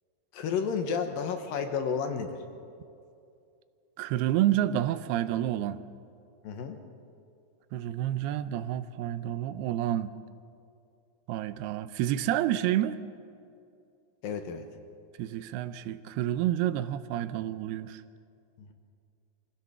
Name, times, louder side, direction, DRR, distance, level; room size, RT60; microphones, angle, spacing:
voice 1, 0.3-2.4 6.4-6.8 14.2-14.7 18.6-18.7, left 6 dB, 70° left, 6 dB, 2.7 m, -31 dB
voice 2, 4.0-5.8 7.7-10.1 11.3-13.0 15.2-18.0, right 12 dB, 85° right, 13 dB, 2.6 m, -29 dB
25.0 x 16.0 x 6.9 m, 2.5 s
omnidirectional pair, 4.6 m